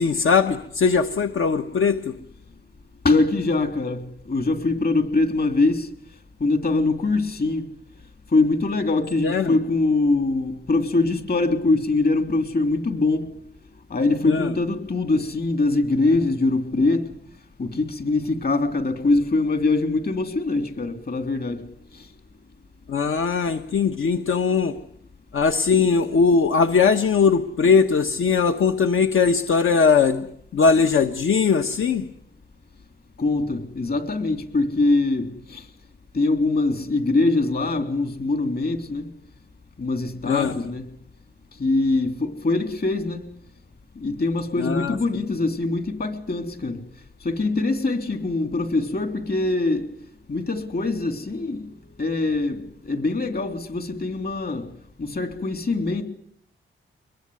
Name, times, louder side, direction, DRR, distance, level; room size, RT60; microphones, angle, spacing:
voice 1, 0.0-2.2 9.2-9.6 14.2-14.5 22.9-24.8 25.3-30.3 30.5-32.1 40.2-40.6 44.6-45.3, left 5 dB, 80° left, 1.3 m, -20 dB
voice 2, 3.0-5.9 6.4-7.6 8.3-13.3 13.9-17.1 17.6-21.7 33.2-35.6 36.1-39.1 39.8-40.9 41.6-43.3 44.0-46.8 47.2-49.9 50.3-51.7 52.0-54.7 55.0-56.0, left 3 dB, 50° left, 3.5 m, -23 dB
23.5 x 22.0 x 9.6 m
wide cardioid pair, 140°, 21 cm